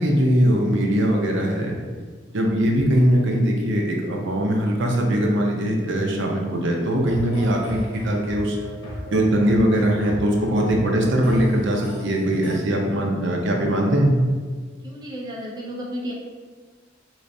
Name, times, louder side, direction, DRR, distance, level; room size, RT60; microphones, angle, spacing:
voice 1, 0.0-1.8 2.3-8.6 9.1-14.2, equal, 65° right, 0 dB, 0.6 m, -21 dB
sound 1, 7.0-12.6, equal, 80° left, 0.9 m, -36 dB
voice 2, 14.8-16.1, equal, 20° right, -3 dB, 0.4 m, -32 dB
3.7 x 3.2 x 2.6 m, 1.5 s
head